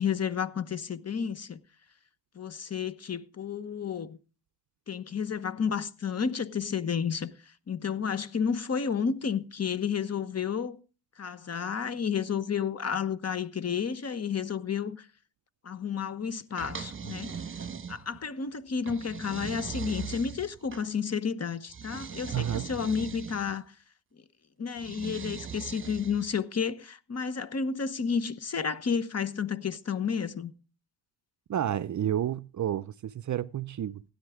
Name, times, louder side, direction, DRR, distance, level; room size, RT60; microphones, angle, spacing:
voice 1, 0.0-1.6 2.4-4.2 4.9-7.3 7.7-10.8 11.2-15.1 15.6-17.4 17.9-23.6 24.6-30.5, left 6 dB, 35° left, 1.0 m, -31 dB
sound 1, 16.6-18.3 18.9-20.9 21.7-23.6 24.8-26.4, right 6 dB, 30° right, 1.3 m, -40 dB
voice 2, 22.3-22.7 31.5-34.0, right 10 dB, 45° right, 0.5 m, -30 dB
16.5 x 9.8 x 3.6 m
cardioid pair, 105°, 43 cm